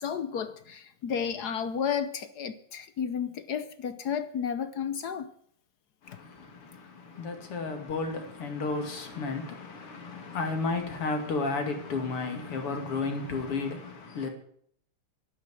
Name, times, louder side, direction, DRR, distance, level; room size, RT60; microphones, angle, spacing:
voice 1, 0.0-5.3, left 7 dB, 60° left, 1.2 m, -32 dB
voice 2, 6.0-14.3, left 3 dB, 85° left, 3.3 m, -33 dB
12.0 x 11.5 x 7.5 m
omnidirectional pair, 2.4 m